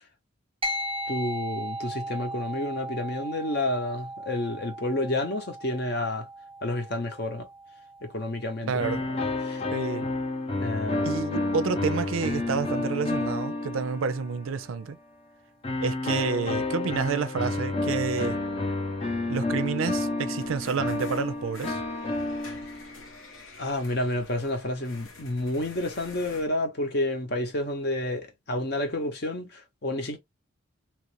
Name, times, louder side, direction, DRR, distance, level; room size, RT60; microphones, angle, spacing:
sound 1, 0.6-10.3, right 1 dB, 30° right, 0.6 m, -38 dB
voice 1, 1.1-6.3 6.6-7.5 8.0-9.6 10.6-11.4 23.6-30.2, left 1 dB, 50° left, 0.9 m, -30 dB
voice 2, 8.7-9.0 9.7-10.0 11.0-15.0 15.8-18.4 19.3-21.8, right 5 dB, 80° right, 0.4 m, -29 dB
sound 2, 8.8-14.6 15.6-23.0, left 2 dB, 30° left, 0.6 m, -30 dB
sound 3, 20.4-26.5, left 3 dB, 75° left, 1.0 m, -48 dB
3.0 x 2.5 x 3.1 m
head